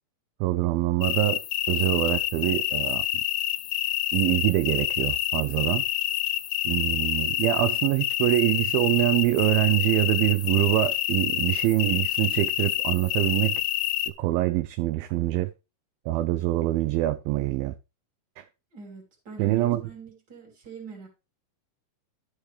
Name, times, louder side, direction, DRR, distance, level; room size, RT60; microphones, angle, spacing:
voice 1, 0.4-1.4 1.7-3.1 4.1-5.8 6.7-13.6 14.2-15.5 16.1-17.7 18.4-18.5 19.4-19.8, right 16 dB, 80° right, 2.3 m, -24 dB
sound 1, 1.0-14.1, left 14 dB, 90° left, 1.7 m, -27 dB
voice 2, 18.7-21.1, right 5 dB, 30° right, 2.9 m, -43 dB
12.0 x 6.5 x 3.3 m
omnidirectional pair, 4.4 m